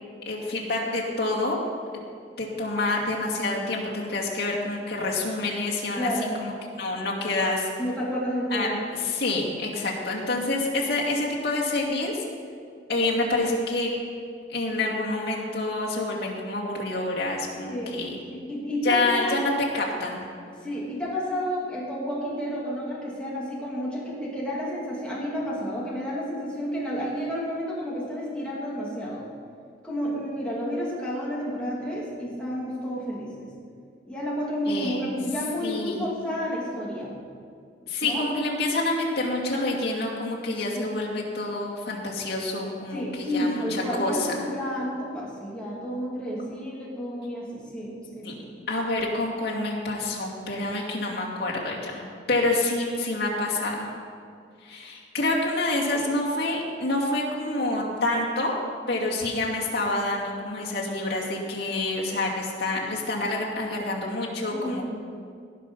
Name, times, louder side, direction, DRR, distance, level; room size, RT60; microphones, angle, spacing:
voice 1, 0.3-1.6 2.4-6.1 6.4-7.7 8.5-12.2 12.9-13.9 14.5-18.2 18.8-20.2 34.7-35.1 35.6-36.1 37.9-44.4 48.2-48.3 48.7-53.9 54.6-58.5 58.9-64.9, left 2 dB, 60° left, -4 dB, 2.5 m, -27 dB
voice 2, 6.0-6.3 7.8-8.8 17.7-18.0 18.3-19.6 20.6-29.3 29.8-33.5 34.1-37.1 38.0-38.2 40.8-41.0 42.9-48.7 64.5-64.9, equal, 5° left, -6 dB, 2.6 m, -31 dB
18.0 x 6.1 x 5.6 m, 2.3 s
head